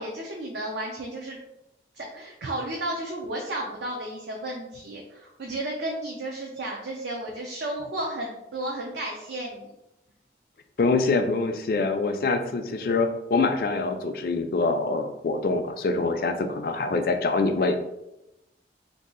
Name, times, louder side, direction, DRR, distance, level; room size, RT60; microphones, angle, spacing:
voice 1, 0.0-1.4 1.9-9.7, right 1 dB, 70° right, -1 dB, 0.5 m, -33 dB
voice 2, 10.8-17.8, left 3 dB, 55° left, 7 dB, 0.3 m, -25 dB
2.7 x 2.3 x 3.7 m, 0.90 s
head